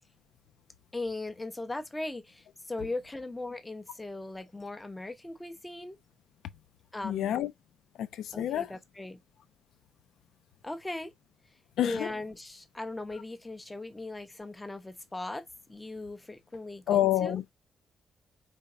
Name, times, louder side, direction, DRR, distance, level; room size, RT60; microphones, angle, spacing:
voice 1, 0.9-6.0 6.9-7.5 8.3-9.2 10.6-11.1 11.8-17.4, left 2 dB, 10° left, 0.8 m, -38 dB
voice 2, 7.0-7.5 8.0-8.7 11.8-12.1 16.9-17.5, left 12 dB, 80° left, 0.7 m, -28 dB
5.2 x 3.4 x 2.5 m
wide cardioid pair, 180°, 0 cm